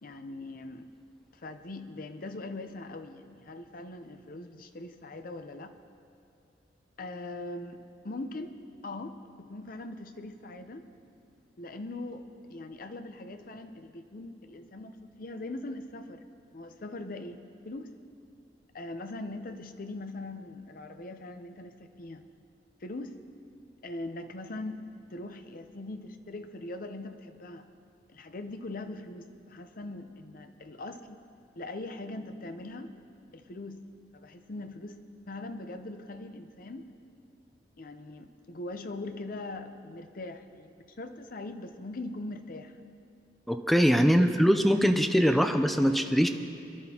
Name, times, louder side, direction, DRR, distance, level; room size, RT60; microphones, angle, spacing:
voice 1, 0.0-0.9 1.3-5.8 7.0-8.6 8.8-10.8 11.6-16.2 16.5-17.9 18.7-22.2 22.8-23.2 23.8-27.7 28.1-31.2 31.5-32.9 33.3-33.8 34.1-35.0 35.3-36.9 37.8-42.8, left 2 dB, 50° left, 8 dB, 0.7 m, -41 dB
voice 2, 43.5-46.3, equal, ahead, 6 dB, 0.5 m, -22 dB
22.0 x 11.5 x 2.9 m, 2.6 s
head